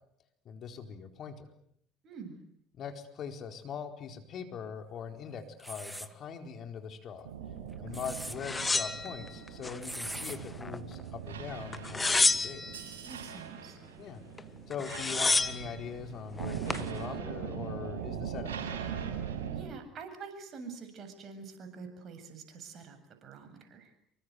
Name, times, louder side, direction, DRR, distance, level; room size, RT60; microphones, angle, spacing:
voice 1, 0.4-1.5 2.7-7.3 7.8-12.6 14.0-14.2 14.7-18.8, left 7 dB, 50° left, 6 dB, 4.4 m, -41 dB
voice 2, 2.0-2.4 7.9-8.2 13.0-13.8 19.5-23.9, right 5 dB, 50° right, 7 dB, 8.0 m, -46 dB
sound 1, 5.6-6.1 7.7-8.4 9.8-10.4, equal, ahead, 2.0 m, -40 dB
sound 2, 7.2-19.6, right 8 dB, 85° right, 6.8 m, -41 dB
sound 3, 8.4-9.8 10.2-11.0 11.7-12.8 14.4-14.5 14.7-15.7 16.4-16.9, left 3 dB, 20° left, 1.6 m, -29 dB
28.0 x 24.5 x 8.1 m, 0.70 s
hypercardioid pair, 70°, 0 cm